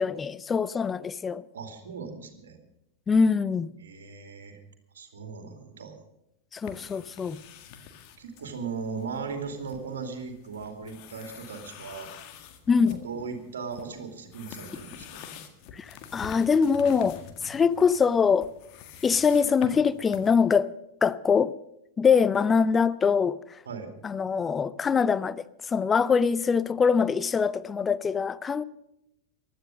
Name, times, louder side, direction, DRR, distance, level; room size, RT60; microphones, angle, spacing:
voice 1, 0.0-1.4 3.1-3.7 6.5-7.4 12.7-13.0 15.7-18.5 19.0-20.7 21.0-21.5 22.0-23.4 24.0-28.6, left 6 dB, 20° left, 0.5 m, -23 dB
voice 2, 1.5-2.6 3.8-4.6 4.9-6.0 8.2-12.1 12.8-15.2 23.7-23.9, right 5 dB, 65° right, 2.6 m, -38 dB
sound 1, 6.6-20.3, left 7 dB, 45° left, 1.8 m, -47 dB
16.0 x 12.0 x 6.3 m
figure-of-eight pair, 90°, 0 cm